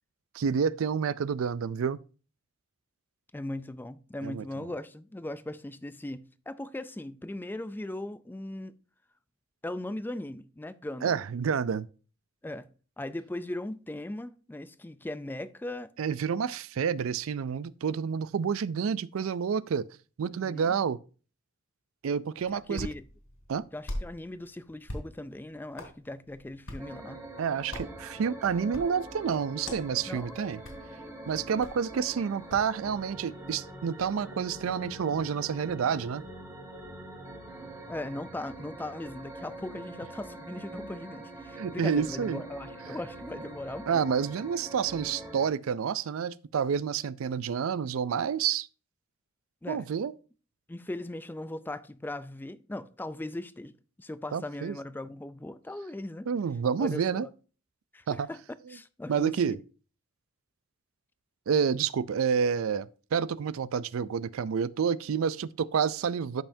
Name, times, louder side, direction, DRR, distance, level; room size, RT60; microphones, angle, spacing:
voice 1, 0.3-2.0 4.2-4.4 11.0-11.9 16.0-19.8 20.2-21.0 22.0-22.9 23.5-23.6 27.4-30.6 31.3-36.2 41.6-42.4 43.9-48.7 49.7-50.1 54.3-54.8 56.3-57.3 58.1-58.3 59.1-59.6 61.5-66.4, right 7 dB, 85° right, 0.4 m, -29 dB
voice 2, 3.3-8.8 9.6-11.2 12.4-12.7 13.0-15.9 20.3-20.7 22.5-23.0 23.7-27.2 30.1-30.3 37.9-44.1 49.6-49.9 50.7-56.3 56.8-57.3 57.9-58.4 58.7-59.6, left 1 dB, 10° left, 0.3 m, -39 dB
Hands, 22.4-32.7, left 1 dB, 80° left, 2.8 m, -44 dB
sound 1, 26.8-45.5, right 2 dB, 15° right, 1.4 m, -44 dB
13.0 x 5.5 x 2.7 m
head